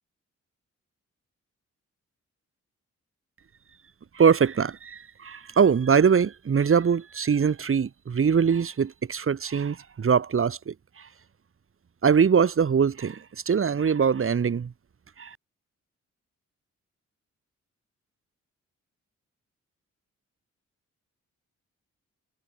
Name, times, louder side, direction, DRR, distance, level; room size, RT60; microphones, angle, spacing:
voice 1, 4.1-11.1 12.0-14.7 15.2-15.4, right 6 dB, 45° right, 2.0 m, -23 dB
cardioid pair, 90°, 29 cm